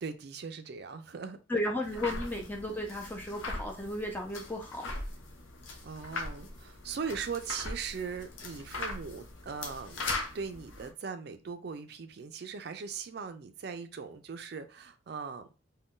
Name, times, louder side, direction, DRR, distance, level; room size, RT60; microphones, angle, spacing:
voice 1, 0.0-1.4 5.8-10.1 10.3-15.6, right 5 dB, 55° right, 0.4 m, -39 dB
voice 2, 1.5-4.9, left 1 dB, 10° left, 0.5 m, -34 dB
sound 1, 1.8-10.9, left 2 dB, 85° left, 0.6 m, -40 dB
2.5 x 2.2 x 3.6 m
head